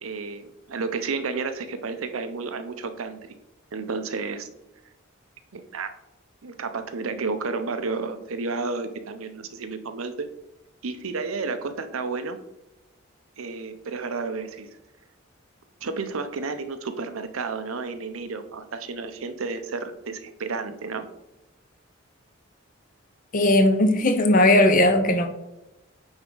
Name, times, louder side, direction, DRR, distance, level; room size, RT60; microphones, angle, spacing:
voice 1, 0.0-3.3 3.7-4.5 5.5-5.9 6.4-10.3 10.8-12.4 13.4-14.7 15.8-21.1, right 4 dB, 85° right, 0.6 m, -31 dB
voice 2, 23.3-25.3, left 1 dB, 40° left, 0.7 m, -18 dB
8.6 x 3.5 x 3.8 m
head